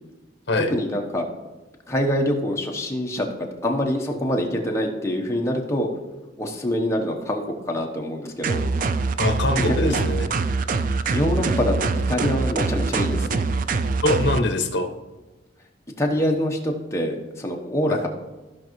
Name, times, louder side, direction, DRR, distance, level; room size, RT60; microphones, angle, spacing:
voice 1, 0.6-1.2 1.9-3.3 3.6-5.9 6.4-8.6 9.7-10.0 11.1-13.4 16.0-18.1, equal, 15° left, 1 dB, 1.0 m, -25 dB
sound 1, 8.4-14.4, right 4 dB, 45° right, 0.3 m, -24 dB
voice 2, 9.2-10.3 14.0-14.9 17.9-18.0, left 2 dB, 60° left, 5 dB, 1.0 m, -23 dB
14.5 x 5.3 x 3.1 m, 1.2 s
head